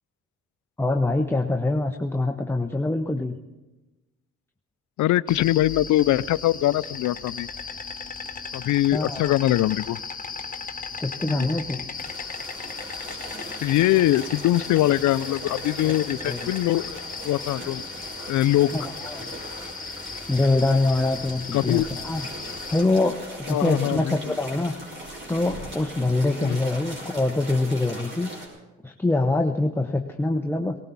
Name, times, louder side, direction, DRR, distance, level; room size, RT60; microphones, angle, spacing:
voice 1, 0.8-3.4 8.9-9.3 11.0-11.9 15.8-16.5 18.7-19.3 20.3-22.3 22.7-24.7 25.3-28.3 28.8-30.8, left 2 dB, 10° left, 4 dB, 0.9 m, -24 dB
voice 2, 5.0-7.5 8.5-10.0 11.3-11.5 13.6-17.0 17.2-17.8 18.3-18.7 21.5-21.9 23.5-24.2 26.4-26.6, left 14 dB, 75° left, 18 dB, 0.5 m, -22 dB
Insect, 5.3-22.8, left 5 dB, 30° left, 1.4 m, -37 dB
sound 1, 11.9-28.5, right 1 dB, 40° right, 5.7 m, -39 dB
18.5 x 18.5 x 4.1 m, 1.1 s
cardioid pair, 90°, 30 cm